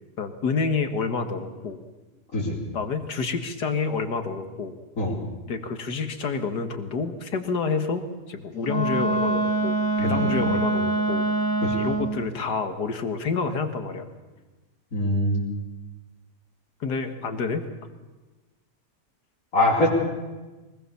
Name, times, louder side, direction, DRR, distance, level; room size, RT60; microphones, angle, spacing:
voice 1, 0.2-1.8 2.7-4.7 5.5-11.2 11.7-14.1 16.8-17.6, left 4 dB, 75° left, 8 dB, 2.2 m, -28 dB
Wind instrument woodwind instrument, 8.6-12.3, right 2 dB, 15° left, 1.5 m, -24 dB
voice 2, 10.0-10.6 11.6-11.8 14.9-15.4 19.5-19.9, left 1 dB, 55° left, -8 dB, 4.6 m, -24 dB
23.5 x 20.0 x 7.1 m, 1.2 s
omnidirectional pair, 1.8 m